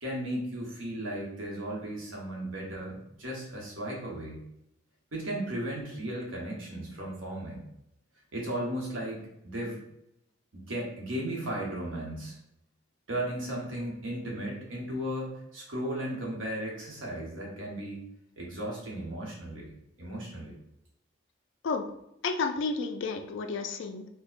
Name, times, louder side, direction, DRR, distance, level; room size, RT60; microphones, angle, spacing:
voice 1, 0.0-4.4 5.1-7.6 8.3-9.8 10.5-12.4 13.1-18.0 18.4-20.5, right 1 dB, 80° right, -2 dB, 1.0 m, -35 dB
voice 2, 22.2-24.1, left 4 dB, 70° left, 6 dB, 0.4 m, -31 dB
4.5 x 2.1 x 2.4 m, 0.81 s
head